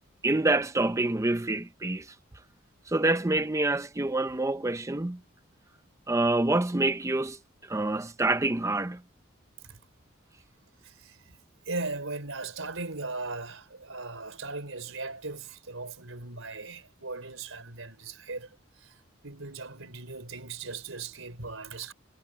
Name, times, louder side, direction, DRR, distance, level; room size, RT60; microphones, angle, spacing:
voice 1, 0.2-2.1 2.9-5.2 6.1-7.4 7.7-9.0, right 2 dB, 15° right, 0.6 m, -26 dB
voice 2, 10.8-11.4 11.7-18.5 18.8-19.0 19.2-21.9, right 3 dB, 90° right, 4.0 m, -38 dB
head